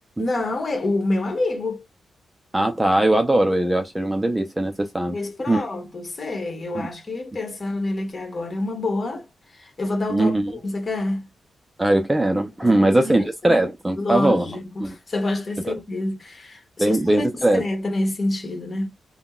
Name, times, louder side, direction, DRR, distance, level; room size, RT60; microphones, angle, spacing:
voice 1, 0.2-1.8 5.1-9.3 9.5-11.3 12.6-13.6 13.9-17.3 17.5-18.9, left 2 dB, 35° left, 1.4 m, -27 dB
voice 2, 2.5-5.2 5.5-5.6 6.7-6.9 10.1-10.5 11.8-14.5 14.8-15.0 15.7-15.8 16.8-17.6, right 1 dB, 10° right, 0.5 m, -20 dB
3.6 x 2.2 x 2.4 m
wide cardioid pair, 120°, 0 cm